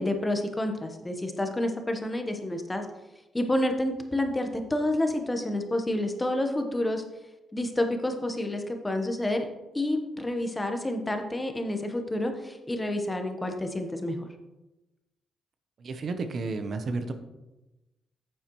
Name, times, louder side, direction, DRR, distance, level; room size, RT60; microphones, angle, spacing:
voice 1, 0.0-2.9 3.3-7.0 7.5-9.5 9.7-14.2, left 1 dB, 15° left, 5 dB, 1.1 m, -29 dB
voice 2, 15.8-17.1, right 3 dB, 55° right, 8 dB, 0.8 m, -32 dB
9.3 x 7.2 x 3.1 m, 1.0 s
cardioid pair, 80°, 0 cm